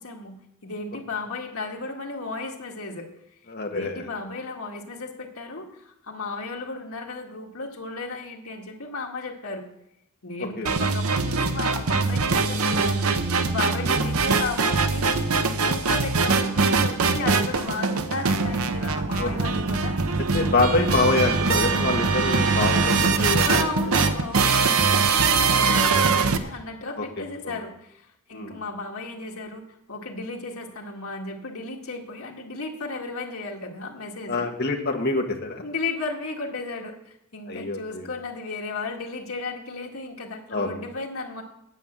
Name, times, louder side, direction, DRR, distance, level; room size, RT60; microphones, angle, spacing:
voice 1, 0.0-3.1 3.7-9.7 10.2-20.0 20.8-20.9 23.4-34.5 35.6-41.4, left 3 dB, 90° left, 0 dB, 2.0 m, -34 dB
voice 2, 3.5-4.0 10.6-10.7 13.8-14.0 19.2-19.4 20.3-23.7 24.7-25.0 27.0-27.6 28.3-28.6 34.3-35.6 37.5-38.1 40.5-40.8, left 2 dB, 50° left, 2 dB, 1.7 m, -26 dB
sound 1, 10.7-26.4, right 4 dB, 85° right, 0.9 m, -22 dB
9.1 x 8.7 x 7.5 m, 0.83 s
head